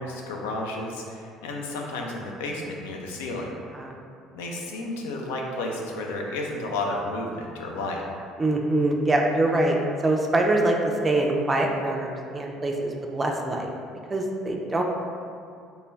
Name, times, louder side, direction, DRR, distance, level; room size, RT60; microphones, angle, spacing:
voice 1, 0.0-3.5 4.3-8.0, left 2 dB, 80° left, 0 dB, 0.3 m, -32 dB
voice 2, 8.4-9.8 10.0-10.8 11.0-13.7 14.1-14.8, right 2 dB, 25° right, 1 dB, 0.3 m, -24 dB
2.2 x 2.1 x 3.2 m, 2.3 s
hypercardioid pair, 60°, 0 cm